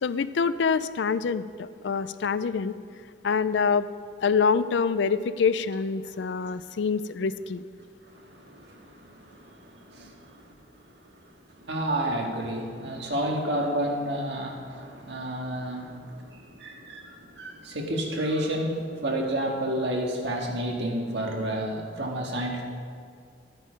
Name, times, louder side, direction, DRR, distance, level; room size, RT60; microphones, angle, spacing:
voice 1, 0.0-2.7 3.2-3.9 4.2-7.6, left 5 dB, 80° left, 15 dB, 0.4 m, -25 dB
voice 2, 8.1-10.5 11.1-22.6, right 1 dB, 70° right, 0 dB, 1.9 m, -31 dB
12.5 x 8.9 x 5.2 m, 2.3 s
head